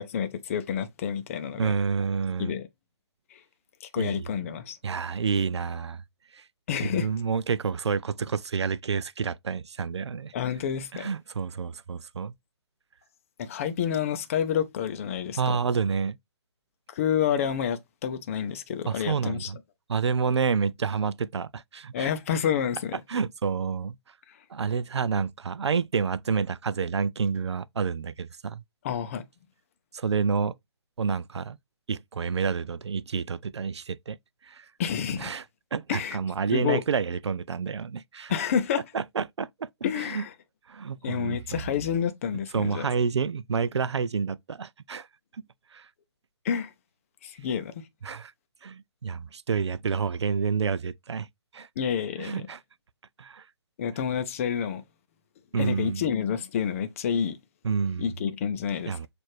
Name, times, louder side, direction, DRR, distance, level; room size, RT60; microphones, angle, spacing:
voice 1, 0.0-1.7 2.4-2.7 3.3-3.4 3.8-4.8 6.7-7.1 10.3-11.1 13.4-15.6 16.9-19.5 21.9-23.0 28.8-29.2 34.8-35.3 35.9-36.2 36.5-36.8 38.3-38.8 39.8-40.3 41.0-42.9 46.4-46.7 47.2-47.7 51.8-52.5 53.8-54.8 55.6-57.4 58.0-59.1, left 8 dB, 30° left, 0.6 m, -29 dB
voice 2, 1.6-2.5 4.0-4.3 4.8-6.0 6.3-6.4 6.8-10.3 10.9-12.3 15.4-16.2 18.9-19.6 19.9-22.1 23.1-24.0 24.5-28.6 29.9-30.5 31.0-31.6 31.9-34.2 34.5-34.6 35.2-35.4 35.7-38.3 38.9-39.7 40.0-40.2 40.7-41.6 42.5-45.1 45.7-45.9 48.0-48.3 48.6-51.3 51.5-51.7 52.2-52.6 53.2-53.4 55.5-56.0 57.6-58.1 58.9-59.1, right 6 dB, 75° right, 0.4 m, -29 dB
6.3 x 2.5 x 3.0 m
figure-of-eight pair, 145°, 14 cm